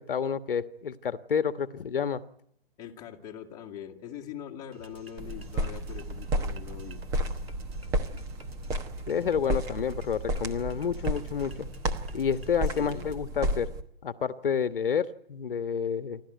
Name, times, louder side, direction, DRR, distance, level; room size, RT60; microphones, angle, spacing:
voice 1, 0.0-2.2 9.1-11.7 12.1-13.7 14.0-16.2, left 7 dB, 60° left, 11 dB, 1.4 m, -29 dB
voice 2, 2.8-7.0 12.8-13.1, left 10 dB, 10° left, 0 dB, 1.8 m, -42 dB
sound 1, 4.7-13.2, right 2 dB, 80° right, 2.8 m, -49 dB
sound 2, 5.2-13.8, right 1 dB, 10° right, 1.1 m, -32 dB
28.0 x 13.0 x 9.2 m, 0.70 s
hypercardioid pair, 155°, 30 cm